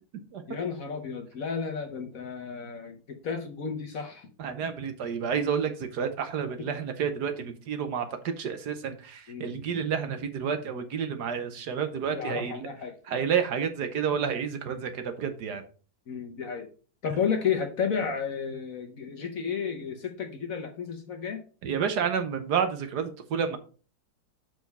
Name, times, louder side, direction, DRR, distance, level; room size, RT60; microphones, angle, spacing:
voice 1, 0.5-4.3 6.6-6.7 9.3-9.6 12.1-13.0 16.1-16.7 17.0-21.4, left 6 dB, 55° left, 5 dB, 1.1 m, -32 dB
voice 2, 4.4-12.7 13.1-15.6 21.6-23.6, right 7 dB, 65° right, 8 dB, 1.3 m, -30 dB
6.7 x 4.7 x 5.3 m, 0.39 s
omnidirectional pair, 2.1 m